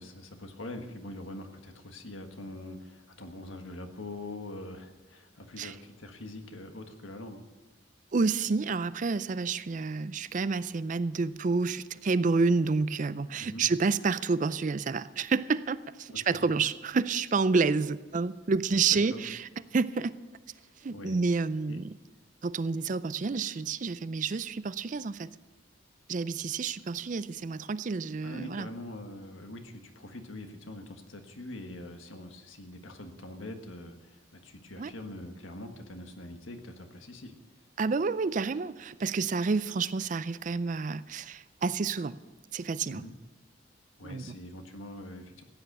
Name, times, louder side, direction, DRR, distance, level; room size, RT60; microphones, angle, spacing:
voice 1, 0.0-7.4 13.4-13.6 16.1-16.5 19.1-19.2 20.6-21.2 21.7-21.8 28.2-37.3 42.9-43.1 44.0-45.4, left 1 dB, 80° left, 5 dB, 1.5 m, -43 dB
voice 2, 8.1-20.1 20.8-21.9 22.4-25.3 26.1-28.7 34.8-34.9 37.8-42.2 42.5-43.0 44.0-44.4, right 4 dB, 40° right, 16 dB, 0.4 m, -29 dB
16.0 x 9.2 x 6.6 m, 1.2 s
head